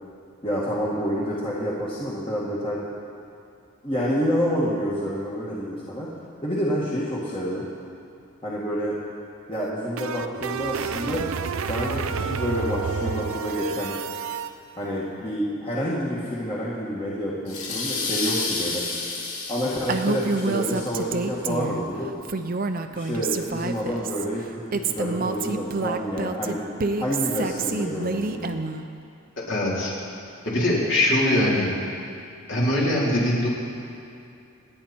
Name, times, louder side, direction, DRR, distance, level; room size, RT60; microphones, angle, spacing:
voice 1, 0.4-2.8 3.8-6.1 6.4-7.7 8.4-9.0 9.5-11.3 11.7-13.9 14.8-18.8 19.5-22.1 22.9-26.6 27.0-28.5, equal, 25° left, -7 dB, 1.9 m, -28 dB
sound 1, 9.5-14.5, right 5 dB, 85° right, 0.6 m, -30 dB
sound 2, 17.5-20.9, left 3 dB, 85° left, 2.4 m, -30 dB
Female speech woman speaking, 19.9-21.8 22.2-24.2 24.7-28.8, right 3 dB, 45° right, 0.7 m, -27 dB
voice 2, 29.5-29.9 30.4-31.7 32.5-33.5, left 1 dB, 60° left, -6 dB, 4.0 m, -22 dB
28.5 x 9.8 x 4.4 m, 2.6 s
head